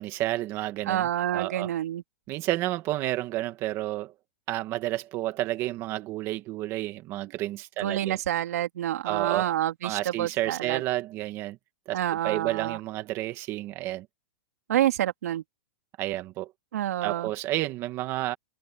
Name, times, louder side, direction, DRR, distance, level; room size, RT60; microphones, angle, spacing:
voice 1, 0.0-1.7 2.3-4.1 4.5-8.2 9.0-9.5 9.8-11.6 11.9-12.0 12.2-14.0 16.0-16.5 17.0-18.4, right 16 dB, 30° right, 1.5 m, -30 dB
voice 2, 0.9-2.0 7.8-10.8 11.9-12.8 14.7-15.4 16.7-17.3, right 12 dB, 75° right, 2.7 m, -28 dB
supercardioid pair, 160°, 8 cm